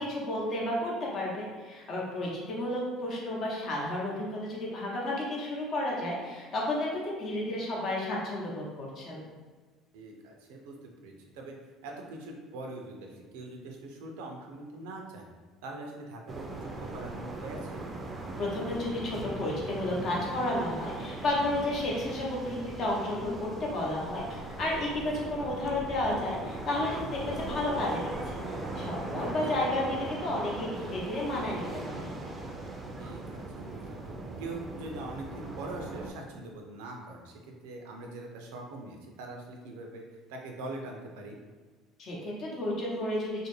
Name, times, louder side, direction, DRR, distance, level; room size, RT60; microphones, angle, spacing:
voice 1, 0.0-9.2 18.4-28.4 28.7-32.1 42.0-43.5, left 1 dB, 50° left, -3 dB, 0.8 m, -32 dB
voice 2, 9.9-10.8 11.0-11.6 11.8-15.3 15.6-17.8 29.2-29.3 33.0-40.0 40.3-41.4, right 2 dB, 85° right, 1 dB, 0.4 m, -43 dB
sound 1, 16.3-36.1, right 2 dB, 25° right, 0.4 m, -39 dB
2.4 x 2.1 x 3.1 m, 1.4 s
supercardioid pair, 85°, 0 cm